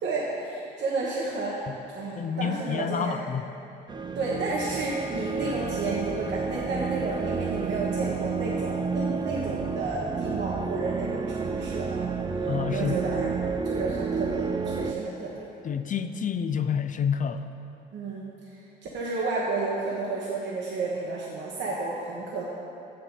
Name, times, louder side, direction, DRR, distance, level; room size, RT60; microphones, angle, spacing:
voice 1, 0.0-1.7 1.9-3.2 4.1-12.1 12.4-13.3 13.6-15.5 17.9-18.3 18.8-22.4, right 3 dB, 70° right, -4 dB, 1.3 m, -31 dB
voice 2, 2.2-3.5 12.5-12.9 15.6-17.5, left 7 dB, 40° left, 9 dB, 0.5 m, -28 dB
sound 1, 3.9-14.9, right 5 dB, 25° right, 0.4 m, -30 dB
6.8 x 6.6 x 7.5 m, 2.8 s
supercardioid pair, 70°, 19 cm